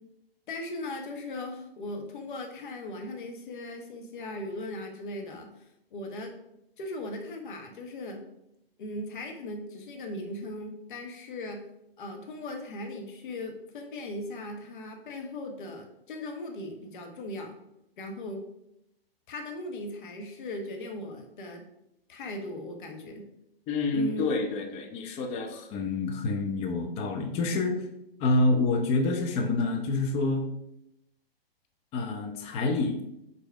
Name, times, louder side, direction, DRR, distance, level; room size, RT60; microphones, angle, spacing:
voice 1, 0.5-6.3 6.8-8.2 8.8-11.6 12.0-17.5 18.0-18.4 19.3-21.6 22.1-23.3 23.9-24.4, left 1 dB, 55° left, 3 dB, 1.3 m, -38 dB
voice 2, 23.7-27.9 28.2-30.4 31.9-33.0, left 3 dB, 20° left, 4 dB, 0.7 m, -27 dB
5.2 x 4.2 x 4.6 m, 0.82 s
figure-of-eight pair, 125°, 30 cm